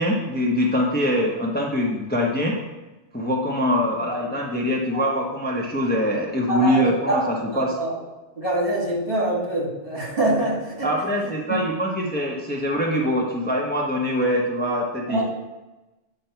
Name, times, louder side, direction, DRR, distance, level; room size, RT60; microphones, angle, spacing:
voice 1, 0.0-2.6 3.1-7.8 10.8-15.2, equal, 10° left, -2 dB, 0.9 m, -23 dB
voice 2, 6.5-7.2 7.5-7.9 8.4-10.9 11.2-11.3 15.1-15.2, right 1 dB, 50° right, -4 dB, 2.5 m, -24 dB
8.5 x 5.4 x 4.5 m, 1.1 s
omnidirectional pair, 1.2 m